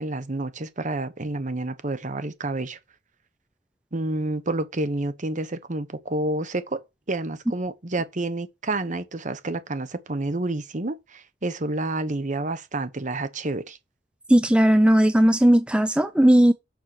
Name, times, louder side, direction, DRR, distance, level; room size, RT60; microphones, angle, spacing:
voice 1, 0.0-2.8 3.9-6.8 7.1-13.8, right 2 dB, 45° right, 1.1 m, -29 dB
voice 2, 14.3-16.5, right 1 dB, 5° right, 0.5 m, -17 dB
6.6 x 6.5 x 6.1 m
head